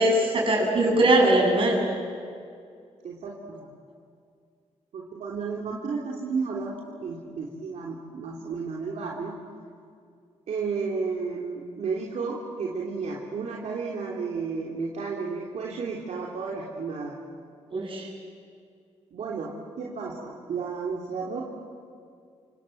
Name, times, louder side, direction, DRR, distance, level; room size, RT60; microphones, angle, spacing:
voice 1, 0.0-1.8 17.7-18.1, right 1 dB, 50° right, 0 dB, 8.0 m, -21 dB
voice 2, 3.0-3.7 4.9-6.7 7.0-9.3 10.5-17.2 19.1-21.4, right 4 dB, 75° right, -2 dB, 3.2 m, -32 dB
28.5 x 26.5 x 7.8 m, 2.3 s
cardioid pair, 105°, 12 cm